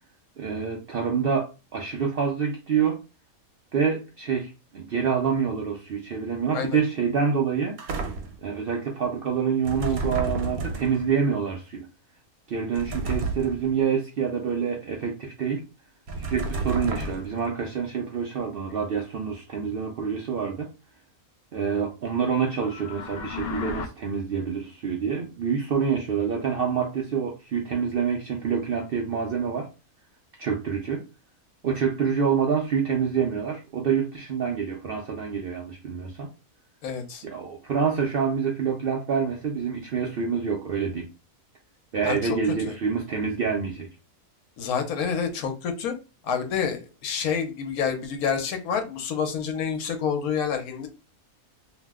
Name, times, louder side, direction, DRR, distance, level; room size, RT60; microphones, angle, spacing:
voice 1, 0.4-3.0 3.7-7.7 8.4-11.9 12.5-15.6 16.2-20.7 21.5-29.7 30.4-31.0 31.6-36.3 37.2-41.1 41.9-43.9, right 6 dB, 65° right, 0.5 m, -27 dB
sound 1, 7.8-8.5 9.6-11.1 12.7-13.7 16.1-17.5, right 3 dB, 80° right, 1.1 m, -31 dB
sound 2, 22.5-23.9, left 5 dB, 70° left, 0.6 m, -34 dB
voice 2, 36.8-37.2 42.0-42.4 42.6-42.7 44.6-45.9 46.2-50.9, left 6 dB, 85° left, 1.2 m, -28 dB
2.8 x 2.0 x 3.4 m
omnidirectional pair, 1.5 m